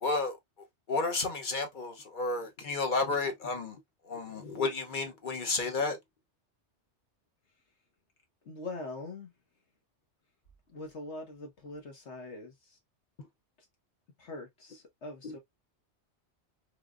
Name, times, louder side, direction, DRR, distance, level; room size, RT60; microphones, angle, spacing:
voice 1, 0.0-6.0 13.2-13.3 15.2-15.4, left 3 dB, 50° left, 1.0 m, -32 dB
voice 2, 8.4-9.3 10.7-12.8 14.2-15.4, left 2 dB, 75° left, 1.6 m, -43 dB
3.3 x 3.2 x 2.4 m
omnidirectional pair, 1.2 m